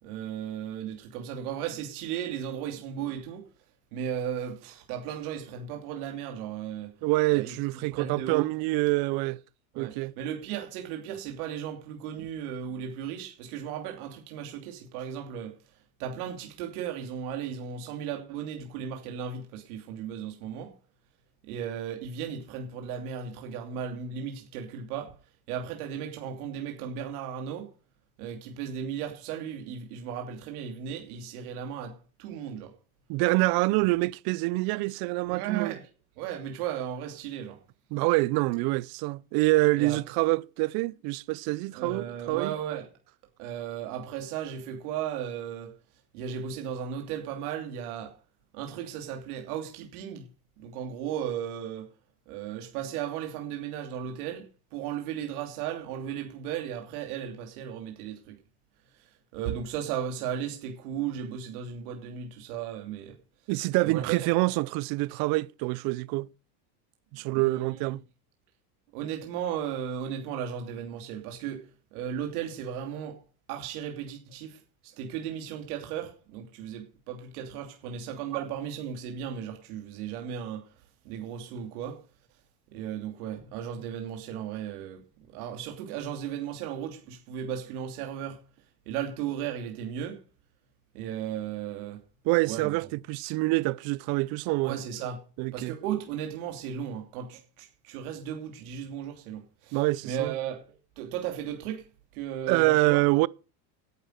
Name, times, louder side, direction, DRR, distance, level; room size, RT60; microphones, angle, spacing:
voice 1, 0.0-3.5 3.9-7.0 7.3-8.5 9.7-20.8 21.4-25.2 25.5-27.7 28.2-32.8 35.3-35.9 36.2-37.6 39.8-40.0 41.7-42.9 43.4-45.7 46.1-48.2 48.5-50.3 50.6-51.9 52.3-58.4 58.9-63.2 63.8-64.3 67.3-68.0 68.9-73.2 73.5-82.0 82.7-88.4 88.9-90.2 90.9-92.0 92.4-92.7 94.6-95.2 95.5-101.9 102.1-103.0, right 9 dB, 80° right, 2.9 m, -36 dB
voice 2, 7.0-9.4 9.8-10.1 33.1-35.7 37.9-42.5 63.5-66.3 67.1-68.0 92.3-94.8 95.4-95.7 99.7-100.3 102.5-103.3, right 22 dB, 55° right, 0.6 m, -26 dB
10.5 x 8.7 x 6.4 m
supercardioid pair, 135°, 44 cm